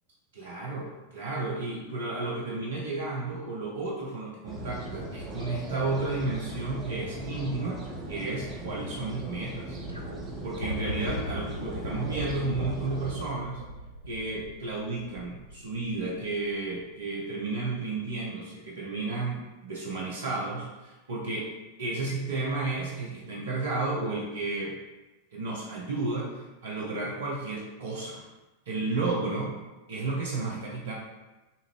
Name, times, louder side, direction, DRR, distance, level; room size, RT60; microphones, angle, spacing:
voice 1, 0.3-9.8 10.4-13.6 14.1-21.5 21.8-24.8 25.3-28.2 28.7-29.5 29.9-30.9, right 3 dB, 65° right, -4 dB, 0.8 m, -32 dB
sound 1, 4.5-13.2, right 1 dB, 25° right, 0.9 m, -39 dB
sound 2, 9.9-17.0 18.2-18.3, left 1 dB, 85° left, 0.5 m, -39 dB
5.6 x 2.6 x 3.0 m, 1.1 s
figure-of-eight pair, 90°, 0 cm